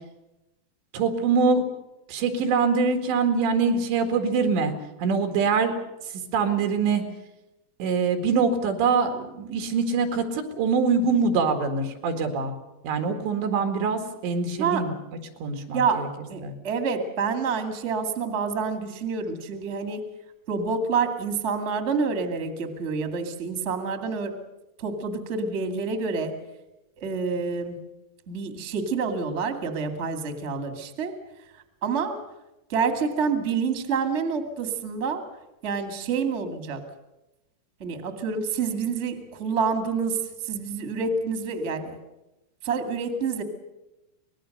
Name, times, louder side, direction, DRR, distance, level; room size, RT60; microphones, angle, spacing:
voice 1, 0.9-1.6 2.1-4.7 5.0-5.8 6.3-7.0 7.8-12.5 12.8-15.0 15.4-16.1 16.4-16.5, right 5 dB, 90° right, 5 dB, 4.4 m, -24 dB
voice 2, 16.3-20.0 20.5-24.3 24.8-26.3 27.0-27.8 28.3-31.1 31.8-32.2 32.7-35.2 35.6-36.8 37.8-42.0 42.6-43.4, right 5 dB, 30° right, 6 dB, 1.4 m, -27 dB
25.0 x 19.5 x 6.6 m, 0.96 s
omnidirectional pair, 4.9 m